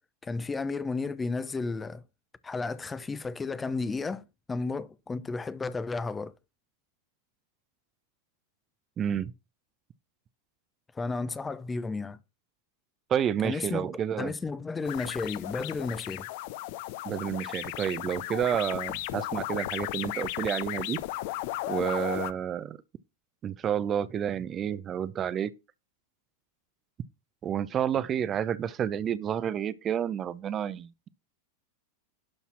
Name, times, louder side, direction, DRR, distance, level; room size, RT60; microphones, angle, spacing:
voice 1, 0.2-2.0 2.4-6.3 10.9-12.2 13.4-13.9 14.2-16.3, left 3 dB, 15° left, 0.6 m, -33 dB
voice 2, 9.0-9.3 13.1-14.3 17.0-21.0 21.7-22.8 23.4-25.5 27.4-31.1, right 9 dB, 25° right, 0.6 m, -30 dB
sound 1, 14.8-22.3, left 15 dB, 50° left, 0.7 m, -35 dB
11.5 x 4.2 x 6.0 m
figure-of-eight pair, 90°, 0 cm